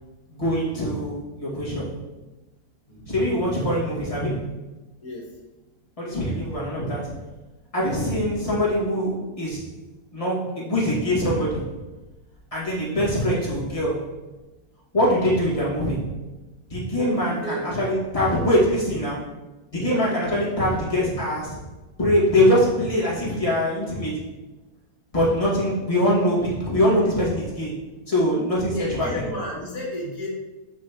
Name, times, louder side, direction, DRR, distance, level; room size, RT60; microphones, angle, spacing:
voice 1, 0.3-1.9 3.1-4.5 6.0-7.2 7.7-9.7 10.1-11.7 12.5-14.1 14.9-16.0 16.7-19.3 19.7-21.6 22.0-24.3 25.1-27.8 28.1-29.2, equal, 20° left, -7 dB, 2.0 m, -23 dB
voice 2, 17.3-17.6 19.7-19.9 28.7-30.3, left 1 dB, 70° left, -3 dB, 1.8 m, -32 dB
6.9 x 6.0 x 2.9 m, 1.2 s
omnidirectional pair, 1.6 m